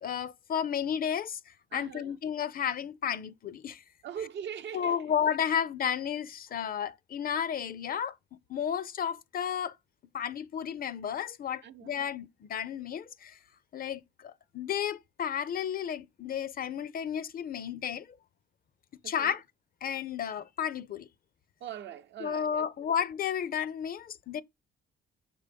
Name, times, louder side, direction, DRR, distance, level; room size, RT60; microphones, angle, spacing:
voice 1, 0.0-1.4 1.7-3.8 4.7-8.1 8.5-9.7 10.1-13.4 13.7-18.0 19.0-19.4 19.8-21.1 22.2-24.4, left 8 dB, 45° left, 0.5 m, -32 dB
voice 2, 1.7-2.1 4.0-5.0 11.6-11.9 19.0-19.3 21.6-22.7, right 9 dB, 65° right, 0.7 m, -41 dB
6.0 x 3.8 x 5.0 m
cardioid pair, 90°, 20 cm